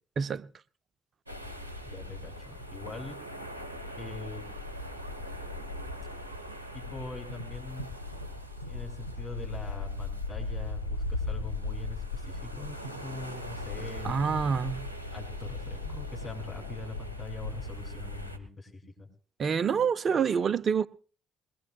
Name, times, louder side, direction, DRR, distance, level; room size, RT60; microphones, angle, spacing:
voice 1, 0.2-0.5 14.0-14.8 19.4-20.9, right 6 dB, 45° right, 0.7 m, -27 dB
sound 1, 1.3-18.4, left 2 dB, 90° right, 0.9 m, -38 dB
voice 2, 1.8-3.2 4.0-4.5 6.7-7.9 8.6-14.8 15.1-19.1, left 3 dB, 30° left, 5.5 m, -43 dB
22.0 x 21.0 x 2.3 m
figure-of-eight pair, 45°, 0 cm